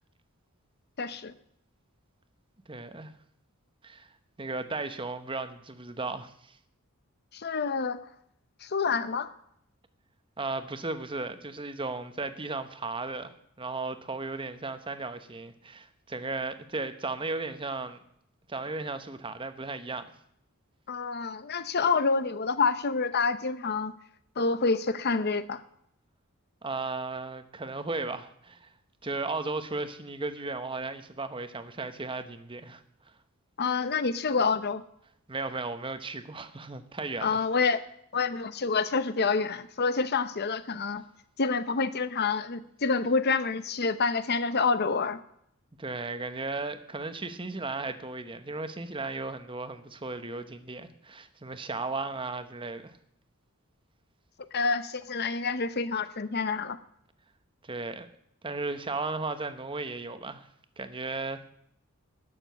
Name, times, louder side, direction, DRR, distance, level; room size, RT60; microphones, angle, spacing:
voice 1, 1.0-1.3 7.3-8.0 8.6-9.3 20.9-23.9 24.4-25.6 33.6-34.8 37.2-37.8 38.1-41.0 41.4-45.2 54.5-56.8, left 4 dB, 50° left, 0.8 m, -27 dB
voice 2, 2.7-3.1 3.8-4.1 4.4-6.6 10.4-18.0 18.5-20.1 26.6-28.7 29.0-32.8 35.3-37.4 45.8-52.9 57.6-58.1 58.4-60.5 60.8-61.5, right 3 dB, 25° right, 1.0 m, -35 dB
12.5 x 7.0 x 9.2 m
head